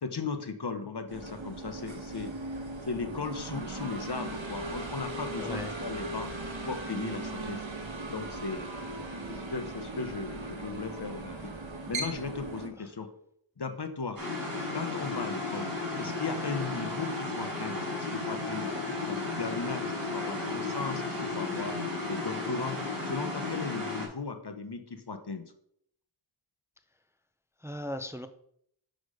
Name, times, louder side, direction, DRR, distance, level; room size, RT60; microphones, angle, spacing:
voice 1, 0.0-2.3 2.9-6.3 6.6-7.7 8.1-8.7 9.3-11.5 11.9-13.1 13.6-14.2 14.7-15.7 16.0-21.8 22.1-22.8 23.1-25.5, left 4 dB, 55° left, 8 dB, 1.1 m, -37 dB
sound 1, 1.1-12.7, right 2 dB, 75° right, 1.4 m, -38 dB
voice 2, 5.4-5.7 9.0-9.1 27.6-28.3, equal, 5° right, 8 dB, 0.6 m, -38 dB
sound 2, 14.2-24.1, left 3 dB, 45° right, 3.9 m, -34 dB
6.4 x 6.3 x 5.0 m, 0.69 s
wide cardioid pair, 45°, 46 cm